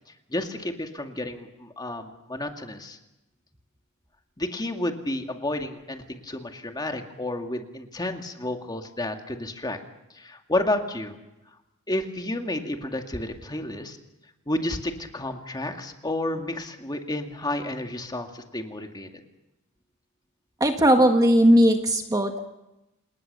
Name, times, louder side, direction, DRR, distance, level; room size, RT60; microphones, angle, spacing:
voice 1, 0.3-3.0 4.4-9.8 10.1-11.2 11.9-14.0 14.5-19.1, left 1 dB, 20° left, 5 dB, 2.2 m, -31 dB
voice 2, 20.6-22.4, equal, 15° right, 5 dB, 1.5 m, -18 dB
28.5 x 19.5 x 6.9 m, 0.93 s
head